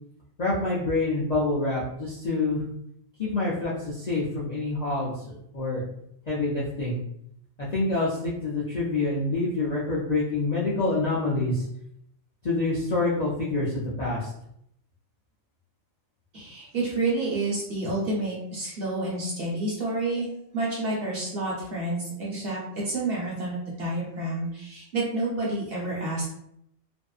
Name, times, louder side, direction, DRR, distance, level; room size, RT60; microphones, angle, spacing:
voice 1, 0.4-2.6 3.2-5.8 6.3-7.0 7.6-11.6 12.4-14.3, left 2 dB, 50° left, -7 dB, 0.5 m, -27 dB
voice 2, 16.3-20.3 20.5-26.4, right 2 dB, 50° right, -6 dB, 1.1 m, -29 dB
2.6 x 2.5 x 2.4 m, 0.74 s
omnidirectional pair, 1.4 m